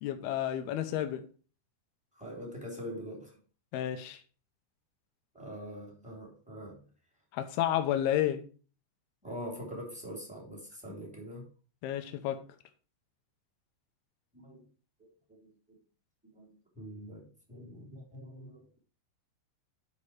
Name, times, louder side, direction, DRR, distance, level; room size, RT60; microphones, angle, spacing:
voice 1, 0.0-1.3 3.7-4.2 7.3-8.4 11.8-12.4, left 11 dB, 75° left, 2.4 m, -31 dB
voice 2, 2.1-3.3 5.3-6.8 9.2-11.5 14.3-14.6 15.0-15.1 15.4-15.5 16.3-16.5 16.7-18.6, equal, ahead, 2.2 m, -43 dB
10.5 x 5.5 x 4.8 m
omnidirectional pair, 5.4 m